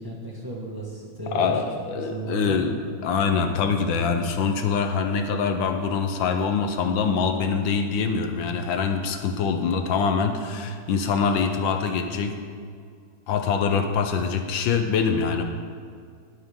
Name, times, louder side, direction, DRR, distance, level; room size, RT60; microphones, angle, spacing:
voice 1, 0.0-2.6, right 3 dB, 10° right, -4 dB, 1.7 m, -34 dB
voice 2, 1.3-12.4 13.3-15.4, left 5 dB, 80° left, 6 dB, 1.6 m, -24 dB
20.5 x 8.2 x 3.7 m, 2.1 s
omnidirectional pair, 2.1 m